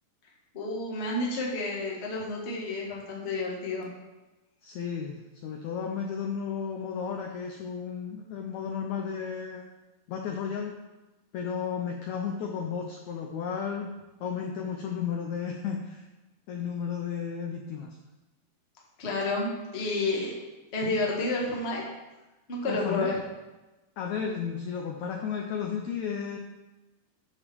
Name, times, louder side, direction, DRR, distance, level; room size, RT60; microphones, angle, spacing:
voice 1, 0.5-3.9 19.0-20.3 20.7-21.8 22.5-23.2, left 2 dB, 35° left, -3 dB, 1.0 m, -30 dB
voice 2, 4.6-9.6 10.1-10.7 11.3-13.9 14.2-16.0 16.5-18.0 22.7-23.1 24.0-26.4, left 7 dB, 75° left, 2 dB, 1.7 m, -33 dB
8.4 x 5.1 x 6.9 m, 1.1 s
omnidirectional pair, 4.1 m